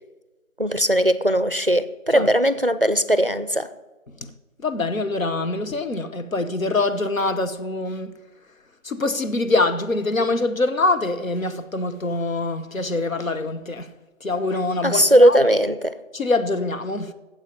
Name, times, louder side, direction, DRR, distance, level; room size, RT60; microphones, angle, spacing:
voice 1, 0.6-3.7 14.8-16.0, equal, 45° right, 0.4 m, -18 dB
voice 2, 4.6-8.1 8.8-13.9 14.2-15.4 16.1-17.1, left 2 dB, 80° left, 1.1 m, -24 dB
9.0 x 7.5 x 8.7 m
figure-of-eight pair, 170°, 40 cm